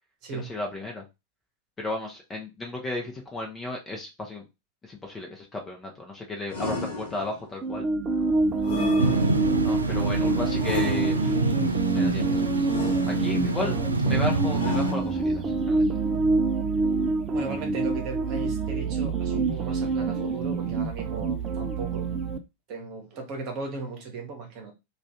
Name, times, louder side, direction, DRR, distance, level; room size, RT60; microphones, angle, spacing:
voice 1, 0.3-1.0 1.8-4.4 4.8-7.9 9.6-11.4 11.9-12.5 13.1-13.7 14.1-15.9, left 2 dB, 15° left, 0.9 m, -34 dB
sound 1, 6.5-7.6 8.6-9.7 10.6-11.5 12.7-13.6 14.5-15.5, left 3 dB, 60° left, 0.9 m, -34 dB
sound 2, 7.6-22.4, right 3 dB, 25° right, 0.5 m, -26 dB
sound 3, 9.0-14.9, right 3 dB, 80° right, 0.3 m, -27 dB
voice 2, 13.3-13.9 17.3-22.1 22.7-24.7, right 3 dB, 40° right, 1.1 m, -37 dB
2.6 x 2.5 x 3.4 m
figure-of-eight pair, 90°, 0 cm